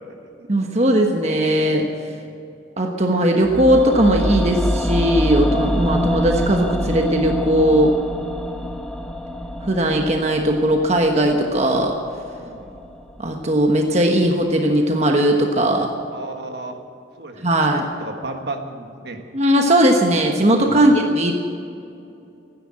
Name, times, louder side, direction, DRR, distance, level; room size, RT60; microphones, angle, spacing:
voice 1, 0.5-1.9 2.8-8.0 9.7-11.9 13.2-15.9 17.4-17.9 19.3-21.3, right 1 dB, 35° right, 2 dB, 1.2 m, -18 dB
sound 1, 3.4-13.5 13.8-13.9, equal, 5° left, 1.0 m, -26 dB
voice 2, 12.3-12.8 16.1-16.8 17.2-17.7 18.0-19.2 20.6-20.9, right 2 dB, 60° right, 5 dB, 1.5 m, -34 dB
15.5 x 10.0 x 8.8 m, 2.5 s
head